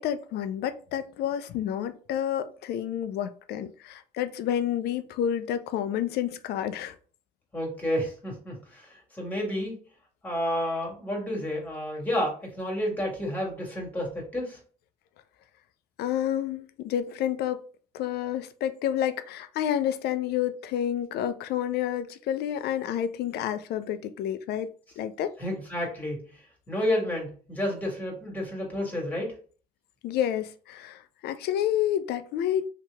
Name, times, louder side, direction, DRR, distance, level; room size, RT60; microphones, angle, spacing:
voice 1, 0.0-7.0 16.0-17.6 17.9-24.7 25.0-25.3 30.0-32.7, left 10 dB, 70° left, 0.4 m, -29 dB
voice 2, 7.5-9.8 10.2-14.6 25.4-26.2 26.7-29.3, left 1 dB, 10° left, 1.6 m, -30 dB
2.9 x 2.8 x 3.4 m
cardioid pair, 110°, 17 cm